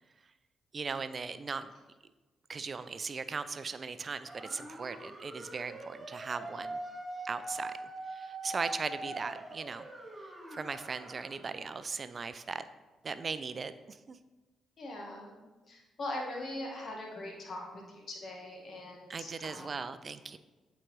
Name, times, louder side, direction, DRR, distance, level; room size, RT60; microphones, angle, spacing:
voice 1, 0.7-1.7 2.5-6.8 7.2-7.7 8.1-9.9 10.5-12.7 13.0-14.2 19.1-20.4, right 4 dB, 45° right, 12 dB, 0.4 m, -38 dB
sound 1, 4.3-11.5, right 2 dB, 25° right, 1.8 m, -43 dB
voice 2, 14.8-15.4 15.7-19.7, left 1 dB, 55° left, 0 dB, 1.5 m, -41 dB
8.2 x 3.8 x 3.2 m, 1.2 s
hypercardioid pair, 45°, 0 cm